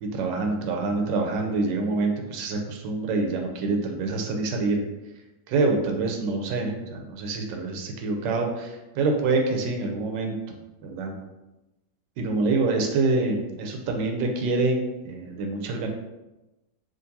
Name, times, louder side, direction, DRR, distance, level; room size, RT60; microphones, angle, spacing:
voice 1, 0.0-4.8 5.5-10.5 10.8-11.2 12.2-15.9, right 3 dB, 85° right, 2 dB, 1.3 m, -26 dB
3.7 x 2.8 x 2.7 m, 1.0 s
omnidirectional pair, 1.9 m